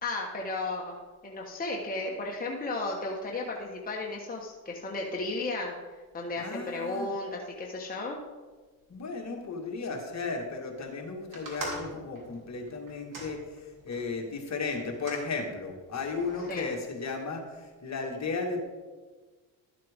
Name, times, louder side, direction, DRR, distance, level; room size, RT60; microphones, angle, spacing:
voice 1, 0.0-5.7 6.1-8.2 16.5-16.7, left 2 dB, 20° left, -2 dB, 1.4 m, -34 dB
voice 2, 6.4-7.1 8.9-18.6, left 4 dB, 40° left, 2 dB, 1.8 m, -35 dB
sound 1, 11.3-14.1 14.7-15.3 16.1-16.7, right 2 dB, 50° right, 2.8 m, -42 dB
12.5 x 7.4 x 3.6 m, 1.4 s
supercardioid pair, 85°, 42 cm